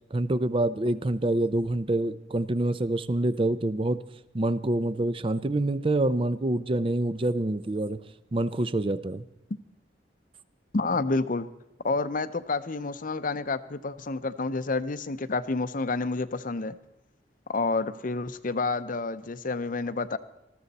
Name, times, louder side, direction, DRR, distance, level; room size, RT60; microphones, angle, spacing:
voice 1, 0.1-4.0 4.3-8.0 8.3-9.2, right 2 dB, 30° right, 15 dB, 0.6 m, -26 dB
voice 2, 10.7-11.5 11.8-16.8 17.5-20.2, left 3 dB, 45° left, 13 dB, 0.7 m, -29 dB
19.5 x 14.0 x 4.1 m, 0.94 s
head